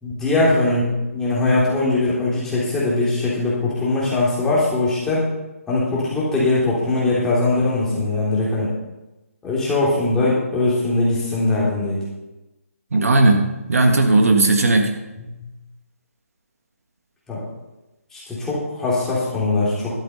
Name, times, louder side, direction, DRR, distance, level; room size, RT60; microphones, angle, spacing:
voice 1, 0.0-5.3 5.7-8.7 9.4-12.0 17.3-17.4 18.1-19.9, left 2 dB, 5° left, -8 dB, 3.4 m, -21 dB
voice 2, 12.9-14.9, right 2 dB, 70° right, 5 dB, 1.6 m, -16 dB
12.5 x 7.9 x 5.5 m, 1.0 s
figure-of-eight pair, 155°, 8 cm